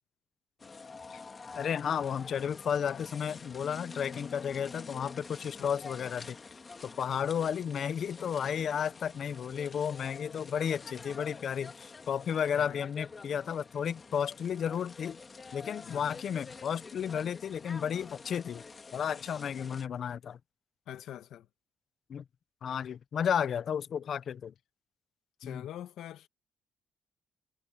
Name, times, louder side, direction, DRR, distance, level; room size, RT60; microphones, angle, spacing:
sound 1, 0.6-19.9, left 4 dB, 35° left, 2.1 m, -48 dB
voice 1, 1.5-6.4 7.0-15.2 15.5-18.6 18.9-20.4 22.1-22.2 22.6-24.5 25.4-25.7, left 8 dB, 60° left, 0.8 m, -33 dB
voice 2, 15.8-16.2 20.9-21.5 25.4-26.3, left 11 dB, 80° left, 2.0 m, -44 dB
cardioid pair, 90°, 0 cm